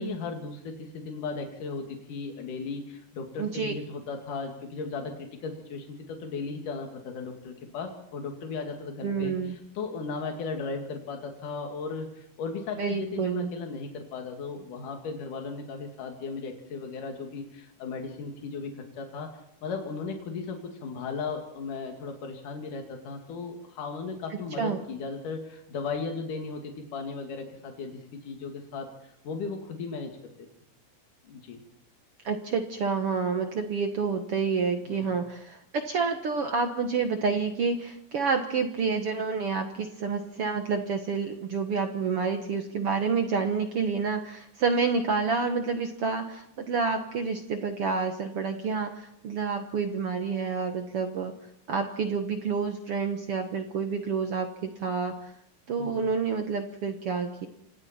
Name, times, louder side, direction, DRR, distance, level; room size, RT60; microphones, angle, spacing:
voice 1, 0.0-28.0 28.2-28.9 29.2-30.5 31.3-31.6 34.9-35.1 55.8-56.1, left 4 dB, 75° left, 3 dB, 3.8 m, -36 dB
voice 2, 3.4-3.7 9.0-9.6 12.8-13.5 24.6-24.8 32.2-51.3 51.7-55.1 55.7-57.5, right 5 dB, 55° right, 5 dB, 1.9 m, -29 dB
28.0 x 26.0 x 4.4 m, 0.75 s
omnidirectional pair, 3.8 m